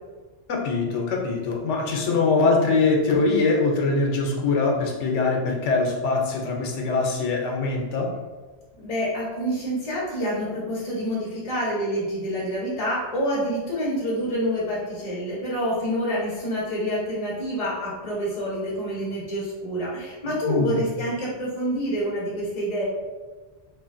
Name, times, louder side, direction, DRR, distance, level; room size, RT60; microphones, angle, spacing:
voice 1, 0.5-8.1 20.5-20.8, left 3 dB, 85° left, 0 dB, 0.9 m, -23 dB
voice 2, 8.8-22.8, equal, 40° left, -6 dB, 0.7 m, -27 dB
3.0 x 2.5 x 2.5 m, 1.3 s
omnidirectional pair, 1.2 m